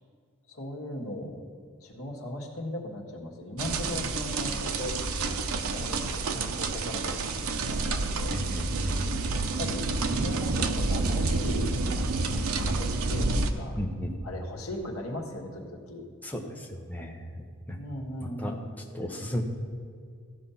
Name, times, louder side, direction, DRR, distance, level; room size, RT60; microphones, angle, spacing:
voice 1, 0.5-1.4 1.8-5.0 5.7-8.5 9.4-13.3 13.5-13.8 14.2-16.0 17.8-18.7, left 1 dB, 80° left, 0 dB, 1.6 m, -38 dB
sound 1, 3.6-13.5, right 3 dB, 85° right, 0.7 m, -29 dB
voice 2, 8.3-9.2 13.8-14.1 16.2-17.4 17.7-17.8 18.2-18.5 18.9-19.4, equal, 10° left, 1 dB, 1.0 m, -35 dB
15.0 x 5.3 x 5.7 m, 2.1 s
head